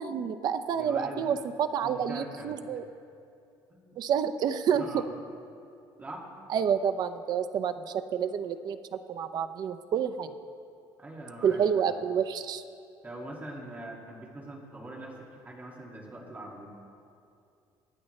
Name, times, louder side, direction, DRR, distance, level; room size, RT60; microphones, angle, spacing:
voice 1, 0.0-2.8 4.0-4.8 6.5-8.8 9.1-10.3 11.4-12.6, right 8 dB, 45° right, 10 dB, 0.6 m, -29 dB
voice 2, 0.7-1.3 1.8-2.8 3.7-4.0 4.8-5.1 6.0-6.2 11.0-11.6 13.0-16.7, right 1 dB, 20° right, -2 dB, 2.2 m, -42 dB
25.0 x 9.9 x 3.2 m, 2.5 s
cardioid pair, 160°, 9 cm